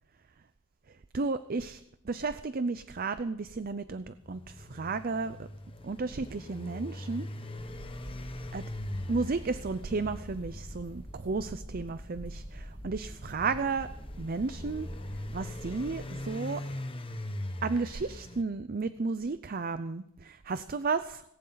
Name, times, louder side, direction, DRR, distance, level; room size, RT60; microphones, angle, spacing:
voice 1, 1.1-5.5 5.8-7.3 8.5-8.6 9.1-13.9 14.2-14.9 15.3-16.6 17.6-21.2, right 4 dB, 40° right, 12 dB, 0.5 m, -33 dB
sound 1, 4.0-18.4, left 1 dB, 25° left, 1.0 m, -41 dB
sound 2, 7.6-16.2, equal, 5° right, 1.9 m, -45 dB
19.0 x 17.5 x 4.0 m, 0.77 s
head